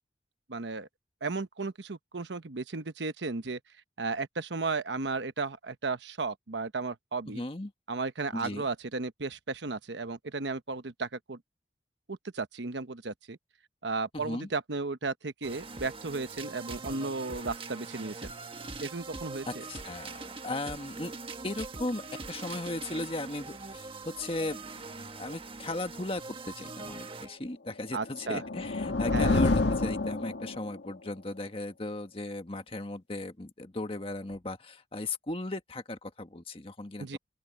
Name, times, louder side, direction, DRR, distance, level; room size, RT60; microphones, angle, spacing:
voice 1, 0.5-0.9 1.2-3.6 4.0-7.4 7.9-11.4 12.1-13.4 13.8-18.3 18.8-19.6 27.9-28.4 29.1-29.4 37.0-37.2, right 3 dB, 85° right, 1.0 m, -34 dB
voice 2, 7.3-7.7 8.3-8.7 14.1-14.5 19.5-21.1 21.4-24.7 25.0-37.2, left 2 dB, 30° left, 1.6 m, -37 dB
sound 1, 15.4-27.4, right 3 dB, 30° right, 1.3 m, -42 dB
sound 2, 28.0-30.9, left 2 dB, 85° left, 1.5 m, -28 dB
open air
head